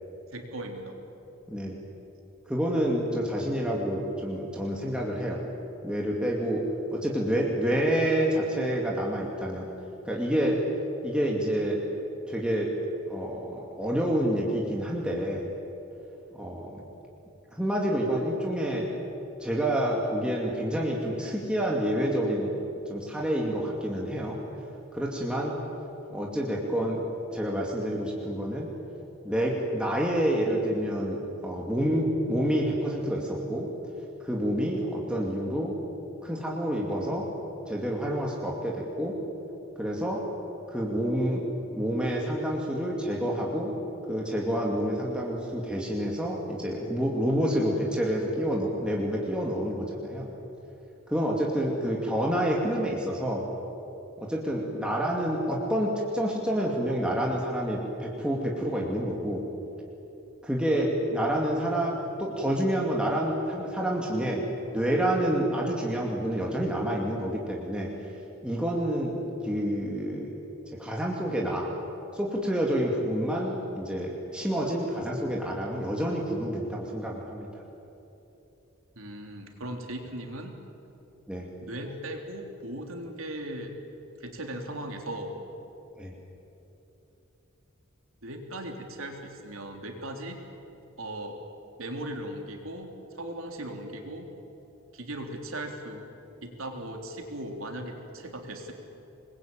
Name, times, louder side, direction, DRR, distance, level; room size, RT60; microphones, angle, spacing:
voice 1, 0.3-1.0 78.9-80.6 81.6-83.7 84.2-85.4 88.2-90.4 91.0-91.4 91.8-94.3 94.9-96.1 96.4-98.7, right 1 dB, 80° right, 3 dB, 3.4 m, -38 dB
voice 2, 1.5-1.8 2.5-5.4 5.8-6.6 6.9-9.7 10.1-10.6 11.0-11.8 12.3-12.7 13.1-15.5 16.3-16.8 17.6-18.8 19.4-22.6 22.9-24.4 24.9-25.6 26.1-27.0 27.3-28.7 29.2-33.7 34.2-35.7 36.2-37.2 37.7-39.2 39.8-40.2 40.7-41.4 41.7-43.7 44.1-50.3 51.1-53.5 54.2-59.4 60.4-64.4 64.7-67.9 68.4-70.3 70.8-71.7 72.1-77.5 81.3-81.5 86.0-86.1, equal, 5° right, -3 dB, 2.6 m, -28 dB
26.5 x 21.0 x 9.0 m, 3.0 s
head